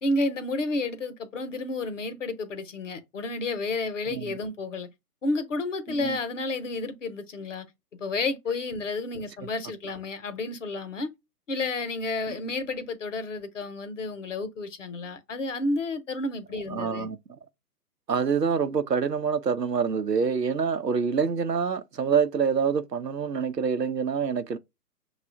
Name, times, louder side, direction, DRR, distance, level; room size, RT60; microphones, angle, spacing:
voice 1, 0.0-4.9 5.2-7.7 8.0-11.1 11.5-17.1, left 2 dB, 50° left, 1.0 m, -31 dB
voice 2, 5.9-6.2 16.7-17.2 18.1-24.6, right 6 dB, 85° right, 0.8 m, -26 dB
6.3 x 2.4 x 3.4 m
figure-of-eight pair, 135°, 48 cm